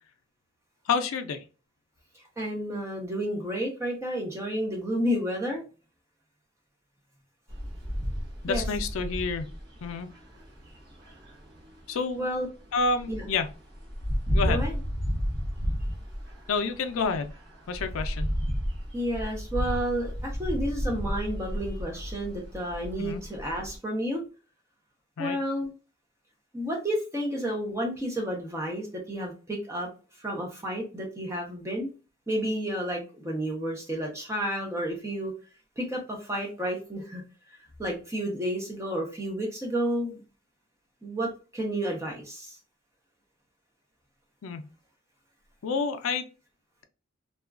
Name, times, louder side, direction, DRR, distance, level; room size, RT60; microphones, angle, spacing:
voice 1, 0.9-1.4 8.4-9.5 9.8-10.1 11.9-12.2 12.7-13.5 14.3-14.6 16.5-17.3 17.7-18.3 23.0-23.2 25.2-25.4 44.4-44.6 45.6-46.2, left 4 dB, 80° left, 8 dB, 0.4 m, -28 dB
voice 2, 2.4-5.6 8.5-8.6 12.2-12.5 13.1-13.3 14.4-14.7 18.9-24.2 25.2-25.7 26.5-29.9 30.2-31.9 32.3-35.3 35.8-37.2 37.8-40.2 41.0-42.6, equal, 15° right, 0 dB, 0.6 m, -31 dB
sound 1, 7.5-12.4 12.7-23.8, equal, 50° right, 0.8 m, -32 dB
2.8 x 2.3 x 2.3 m, 0.34 s
head